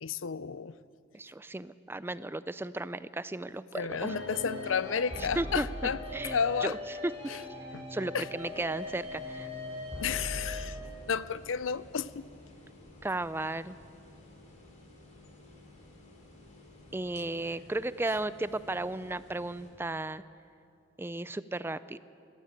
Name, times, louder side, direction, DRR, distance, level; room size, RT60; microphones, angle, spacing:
voice 1, 0.0-0.8 3.7-6.8 7.3-7.4 7.7-7.9 8.1-8.3 10.0-10.8 11.1-12.2, left 6 dB, 85° left, 17 dB, 0.6 m, -32 dB
voice 2, 1.1-4.1 5.4-5.7 6.1-6.8 7.0-7.1 7.9-9.5 13.0-13.8 16.9-20.2 21.0-22.0, right 2 dB, 10° right, 16 dB, 0.4 m, -34 dB
Dulcet flute - Music track, 3.9-10.8, left 2 dB, 30° right, 7.0 m, -40 dB
sound 1, 8.4-19.7, left 2 dB, 40° left, 3.9 m, -54 dB
21.0 x 15.5 x 8.9 m, 2.5 s
head